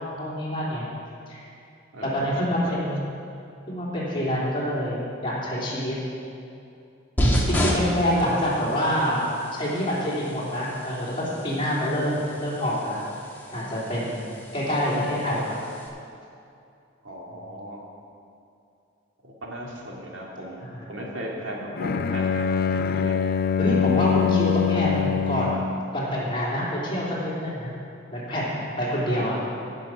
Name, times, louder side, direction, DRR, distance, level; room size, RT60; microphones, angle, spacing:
voice 1, 0.1-0.9 1.3-1.4 2.0-3.1 3.7-6.0 7.5-9.2 9.5-13.0 13.5-15.5 20.6-20.9 23.6-25.7 25.9-27.7 28.1-29.4, equal, 25° left, -7 dB, 3.3 m, -26 dB
voice 2, 1.9-2.6 7.6-7.7 17.0-17.8 19.2-22.4 22.7-23.2 29.1-29.3, equal, 80° right, -3 dB, 2.3 m, -37 dB
sound 1, 7.2-15.9, equal, 10° left, 1.5 m, -31 dB
Bowed string instrument, 21.8-25.8, left 7 dB, 50° left, 0.4 m, -24 dB
16.5 x 6.4 x 6.1 m, 2.6 s
head